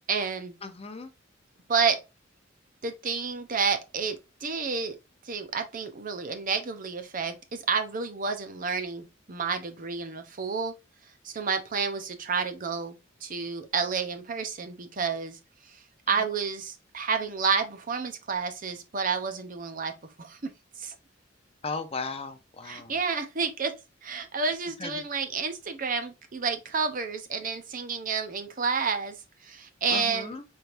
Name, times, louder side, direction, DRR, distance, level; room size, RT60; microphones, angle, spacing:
voice 1, 0.1-0.6 1.7-2.0 2.8-5.0 5.2-10.7 11.2-20.5 20.8-21.0 22.6-23.7 24.0-30.3, right 5 dB, 45° right, 0.7 m, -30 dB
voice 2, 0.6-1.1 21.6-22.9 24.8-24.9 29.9-30.4, left 4 dB, 30° left, 0.6 m, -36 dB
4.5 x 3.4 x 2.5 m
head